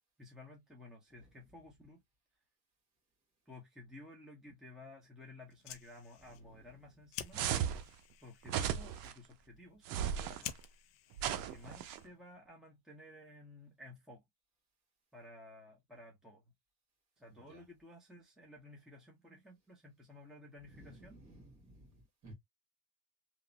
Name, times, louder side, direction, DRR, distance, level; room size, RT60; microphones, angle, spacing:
voice 1, 0.2-2.0 3.5-7.5 8.2-10.8 11.2-14.2 15.1-16.5 17.2-21.2, left 2 dB, ahead, 0.8 m, -55 dB
Fire, 5.4-12.3, left 11 dB, 85° left, 0.6 m, -51 dB
sound 1, 7.3-7.8 8.5-9.1 9.9-10.4 11.2-12.0, right 9 dB, 65° right, 0.6 m, -35 dB
voice 2, 17.3-17.6 20.7-22.3, right 1 dB, 45° right, 1.6 m, -56 dB
3.0 x 2.1 x 2.6 m
cardioid pair, 125°, 38 cm